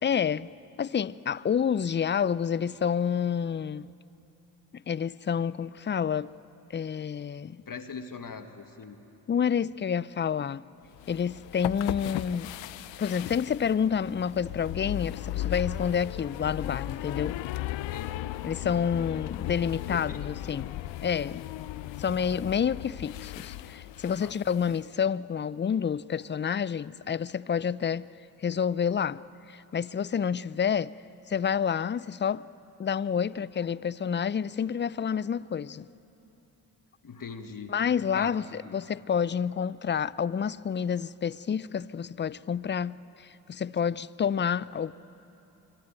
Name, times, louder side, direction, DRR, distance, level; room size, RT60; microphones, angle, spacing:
voice 1, 0.0-0.5 0.8-3.9 4.7-6.3 6.7-7.6 9.3-10.6 11.1-12.5 13.0-17.4 18.4-20.7 21.0-21.4 22.0-28.1 28.4-30.9 31.3-32.4 32.8-35.9 37.7-44.9, left 7 dB, 25° left, 0.5 m, -29 dB
voice 2, 7.7-9.0 17.9-18.3 19.9-20.2 24.2-24.3 37.0-37.8 38.1-38.3, left 5 dB, 45° left, 2.0 m, -40 dB
sound 1, 10.9-24.8, left 14 dB, 65° left, 0.8 m, -36 dB
26.0 x 24.0 x 9.1 m
hypercardioid pair, 40°, 48 cm